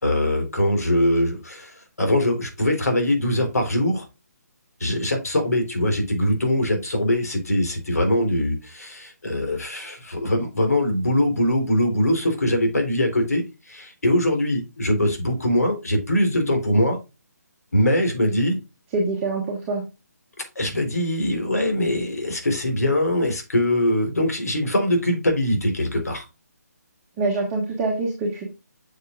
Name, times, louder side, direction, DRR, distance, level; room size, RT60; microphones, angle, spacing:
voice 1, 0.0-4.1 4.8-17.0 17.7-18.6 20.6-26.2, left 1 dB, 65° left, 4 dB, 3.9 m, -22 dB
voice 2, 18.9-19.8 27.2-28.4, right 3 dB, 15° right, -2 dB, 1.6 m, -25 dB
9.9 x 6.7 x 2.5 m, 0.27 s
figure-of-eight pair, 145°, 9 cm